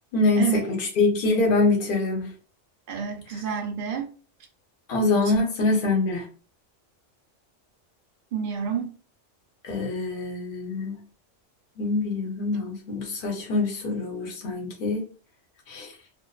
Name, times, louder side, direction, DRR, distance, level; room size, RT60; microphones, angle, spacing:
voice 1, 0.1-2.3 4.9-6.3 9.6-11.0 11.8-15.0 15.7-15.9, left 3 dB, 50° left, 0.8 m, -24 dB
voice 2, 2.9-4.1 8.3-8.9, right 7 dB, 55° right, 0.6 m, -28 dB
2.5 x 2.3 x 2.3 m
omnidirectional pair, 1.2 m